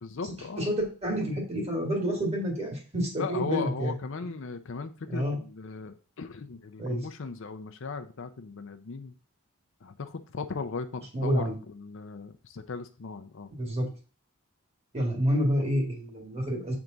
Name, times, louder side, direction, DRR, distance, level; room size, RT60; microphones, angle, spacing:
voice 1, 0.0-0.7 3.2-9.1 9.8-13.5, left 4 dB, 60° left, 8 dB, 0.6 m, -37 dB
voice 2, 0.6-3.9 4.2-4.3 5.1-5.4 6.8-7.1 11.1-11.5 13.5-13.9 14.9-16.7, equal, 30° right, 0 dB, 2.0 m, -29 dB
7.5 x 3.5 x 3.9 m, 0.37 s
head